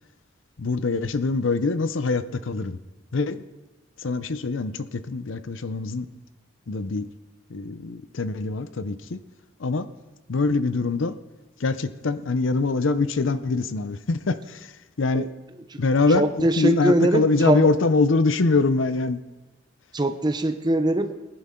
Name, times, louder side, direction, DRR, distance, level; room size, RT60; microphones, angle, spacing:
voice 1, 0.6-2.8 3.1-3.4 4.0-6.1 6.7-7.1 7.5-9.2 9.6-9.9 10.3-11.2 11.6-15.3 15.8-19.2, left 3 dB, 80° left, 13 dB, 0.6 m, -24 dB
voice 2, 16.1-17.7 19.9-21.1, right 1 dB, 20° right, 9 dB, 0.7 m, -22 dB
20.5 x 10.5 x 3.8 m, 1.1 s
head